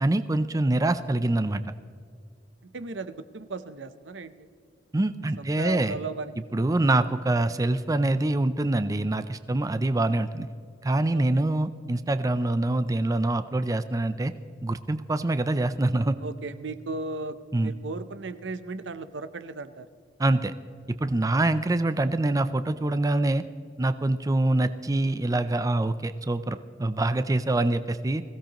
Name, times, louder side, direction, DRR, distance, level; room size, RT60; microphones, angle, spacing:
voice 1, 0.0-1.6 4.9-6.0 6.5-10.5 10.8-14.3 14.6-16.2 17.5-17.7 20.2-20.5 21.0-23.4 23.8-28.2, right 2 dB, 20° right, 11 dB, 0.4 m, -25 dB
voice 2, 2.6-4.5 5.4-6.7 11.1-11.2 16.2-19.9 21.3-21.4, right 3 dB, 85° right, 12 dB, 0.7 m, -36 dB
21.5 x 16.0 x 3.0 m, 2.2 s
head